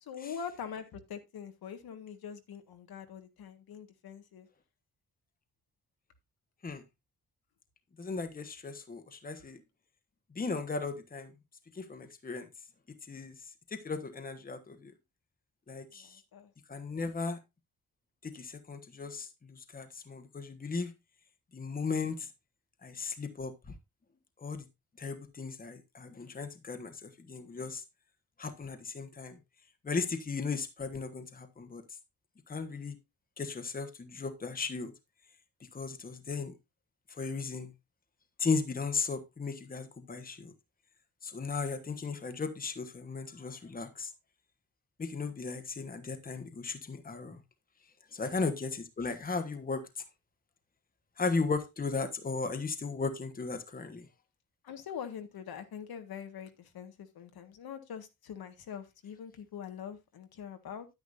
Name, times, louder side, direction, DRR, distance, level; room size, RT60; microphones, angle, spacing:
voice 1, 0.0-4.5 9.4-9.5 15.9-16.5 54.6-60.9, left 7 dB, 85° left, 1.6 m, -44 dB
voice 2, 8.0-9.6 10.3-11.3 11.7-12.5 13.1-13.3 13.7-14.9 15.7-16.2 16.7-17.4 18.2-20.9 21.5-22.3 22.8-23.5 24.4-24.6 25.0-27.8 28.4-29.4 29.8-31.8 32.5-33.0 33.4-34.9 35.7-36.5 37.2-37.7 38.4-40.5 41.2-44.1 45.0-47.4 48.1-49.8 51.2-54.1, left 4 dB, 25° left, 1.2 m, -36 dB
10.5 x 9.7 x 2.6 m
wide cardioid pair, 155°, 36 cm